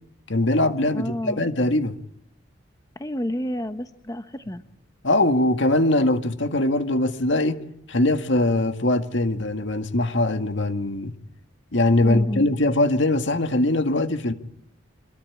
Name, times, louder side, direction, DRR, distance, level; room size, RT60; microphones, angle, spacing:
voice 1, 0.3-2.0 5.0-7.6 7.9-11.1 11.7-14.3, left 2 dB, 65° left, 2.0 m, -21 dB
voice 2, 0.9-1.4 3.0-4.6 12.0-12.5, left 1 dB, 20° left, 1.1 m, -29 dB
27.0 x 22.5 x 8.8 m
head